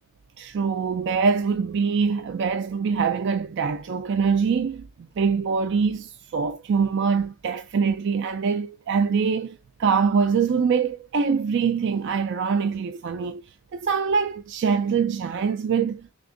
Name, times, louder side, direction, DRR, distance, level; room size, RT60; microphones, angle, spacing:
voice 1, 0.4-13.4 13.7-16.1, right 5 dB, 55° right, 0.3 m, -24 dB
3.5 x 2.9 x 3.7 m
head